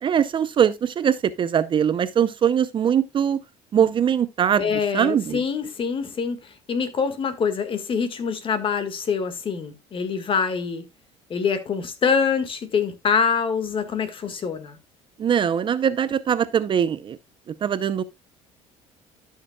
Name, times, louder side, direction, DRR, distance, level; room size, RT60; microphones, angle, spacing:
voice 1, 0.0-3.4 3.7-4.6 4.9-5.4 15.2-17.2 17.6-18.0, right 8 dB, 35° right, 0.6 m, -21 dB
voice 2, 4.6-10.8 11.3-14.8, left 6 dB, 40° left, 1.6 m, -25 dB
13.0 x 6.7 x 2.3 m
cardioid pair, 110°, 14 cm